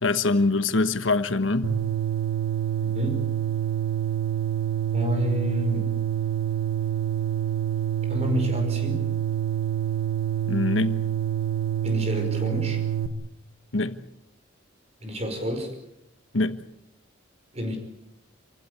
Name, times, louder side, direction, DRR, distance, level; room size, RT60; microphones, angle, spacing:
voice 1, 0.0-1.8 10.5-11.0 13.7-14.0 16.3-16.6, left 3 dB, 65° left, 1.3 m, -24 dB
sound 1, 1.6-13.1, right 10 dB, 75° right, 1.6 m, -27 dB
voice 2, 2.8-3.2 4.9-5.9 8.1-9.1 11.8-12.8 15.0-15.7 17.5-17.8, left 1 dB, 30° right, 5.2 m, -29 dB
28.0 x 16.0 x 8.1 m
head